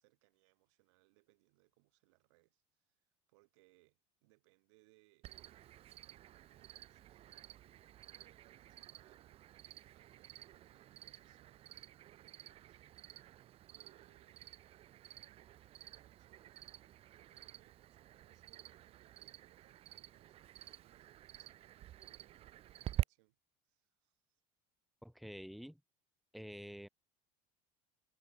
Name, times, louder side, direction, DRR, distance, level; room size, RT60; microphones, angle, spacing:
voice 1, 0.0-5.3 5.9-7.4 8.1-9.5 9.9-11.9 12.2-12.8 13.7-14.6 15.3-16.5 17.2-23.4 23.6-24.4, right 25 dB, 85° right, 5.0 m, -73 dB
Cricket, 5.2-23.0, right 13 dB, 40° right, 0.5 m, -48 dB
voice 2, 25.0-25.8 26.3-26.9, equal, ahead, 0.6 m, -48 dB
supercardioid pair, 115°, 15 cm